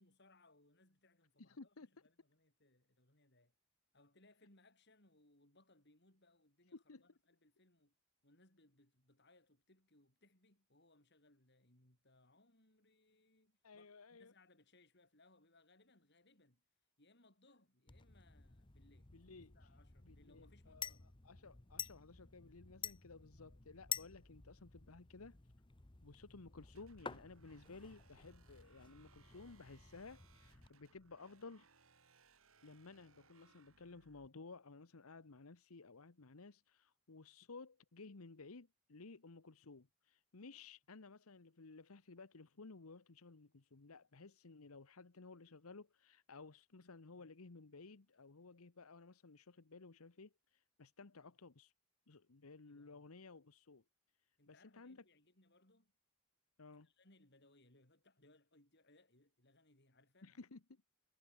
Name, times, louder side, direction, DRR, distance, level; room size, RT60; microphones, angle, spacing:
voice 1, 0.0-3.5 3.9-8.0 8.2-16.6 17.0-19.1 19.5-21.1 23.4-23.6 51.2-51.3 52.6-53.0 54.4-55.9 56.8-60.4, left 2 dB, 50° left, 5.9 m, -70 dB
voice 2, 1.4-1.9 6.7-7.0 13.6-14.3 19.1-19.6 20.0-21.0 21.2-25.4 26.0-31.7 32.6-51.7 52.1-53.8 54.5-55.0 56.6-56.9 60.2-60.8, left 3 dB, 80° left, 1.1 m, -56 dB
sound 1, 17.9-30.7, left 7 dB, 20° left, 0.9 m, -51 dB
sound 2, 26.7-34.3, right 5 dB, 70° right, 3.9 m, -70 dB
head